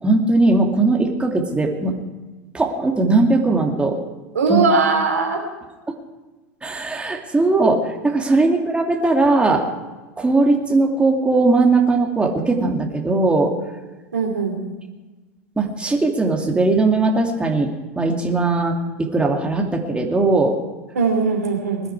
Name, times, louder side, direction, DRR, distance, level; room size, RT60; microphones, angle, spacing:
voice 1, 0.0-2.0 2.5-4.0 4.5-4.6 6.6-9.6 10.2-13.5 15.6-17.7 18.0-20.5, right 3 dB, 15° right, 1 dB, 2.5 m, -19 dB
voice 2, 4.3-5.4 14.1-14.5 20.9-21.8, right 4 dB, 90° right, 2 dB, 2.9 m, -19 dB
21.0 x 12.0 x 4.8 m, 1.2 s
hypercardioid pair, 85°, 8 cm